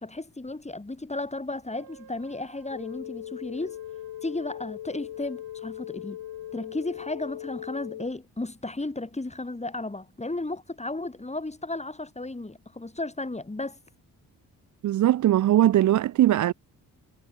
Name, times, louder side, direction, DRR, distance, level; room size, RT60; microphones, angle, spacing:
voice 1, 0.0-3.8 4.2-6.2 6.5-13.8, left 2 dB, 15° left, 2.5 m, -34 dB
Wind instrument woodwind instrument, 1.6-7.2, right 8 dB, 60° right, 6.2 m, -56 dB
sound 1, 2.7-8.1, left 13 dB, 75° left, 2.1 m, -39 dB
voice 2, 14.8-16.5, right 13 dB, 45° right, 0.4 m, -20 dB
supercardioid pair, 50°, 43 cm